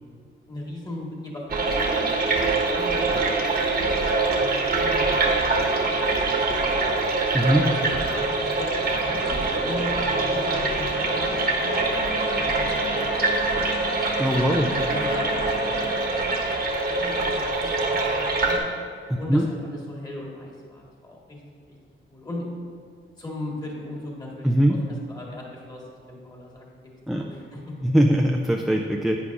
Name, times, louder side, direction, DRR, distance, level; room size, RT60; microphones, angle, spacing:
voice 1, 0.5-3.6 4.3-6.0 6.3-7.0 7.5-13.8 14.4-18.6 19.2-21.4 21.7-21.8 22.1-22.5 23.2-27.7, left 1 dB, 20° left, -3 dB, 1.6 m, -38 dB
sound 1, 1.5-18.6, right 3 dB, 50° right, 1.1 m, -24 dB
sound 2, 8.4-17.9, left 4 dB, 45° left, 0.6 m, -36 dB
voice 2, 14.2-14.7 19.3-19.4 24.4-24.8 27.1-27.2 27.8-29.2, equal, ahead, 1 dB, 0.3 m, -20 dB
11.0 x 9.3 x 2.5 m, 2.1 s
wide cardioid pair, 170°, 21 cm